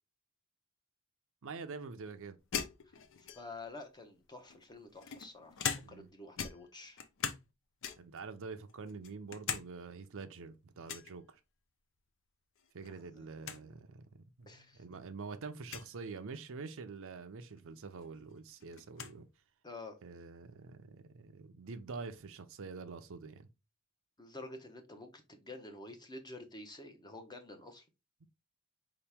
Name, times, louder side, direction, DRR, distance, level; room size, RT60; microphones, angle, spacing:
voice 1, 1.4-2.4 5.8-6.1 8.0-11.4 12.7-14.0 14.4-19.3 20.0-23.5, right 4 dB, 65° right, 0.6 m, -46 dB
sound 1, 2.5-3.7 4.5-6.1 6.4-7.5 7.8-8.2 8.7-9.7 10.0-10.1 10.9-11.1 12.6-12.9 13.2-13.3 13.4-13.6 14.4-14.5 15.6-15.9 17.6-17.7 18.0-19.2, left 7 dB, 60° left, 0.6 m, -40 dB
voice 2, 3.2-5.6 5.9-7.0 12.8-13.8 14.5-14.8 19.6-20.0 24.2-27.8, left 2 dB, 20° left, 0.7 m, -49 dB
4.8 x 2.9 x 3.4 m
head